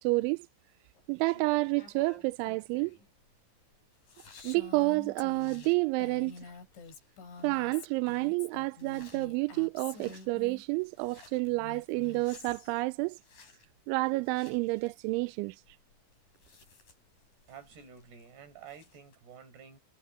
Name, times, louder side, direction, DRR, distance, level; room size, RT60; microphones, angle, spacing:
voice 1, 0.0-0.5 1.1-3.0 4.4-6.5 7.4-13.2 13.9-15.6, right 24 dB, 90° right, 3.0 m, -30 dB
sound 1, 1.0-19.2, left 3 dB, 45° left, 7.3 m, -60 dB
Female speech woman speaking, 4.3-10.6 11.5-12.8, left 4 dB, 75° left, 7.6 m, -48 dB
voice 2, 17.5-19.8, right 7 dB, 60° right, 7.0 m, -50 dB
omnidirectional pair, 5.3 m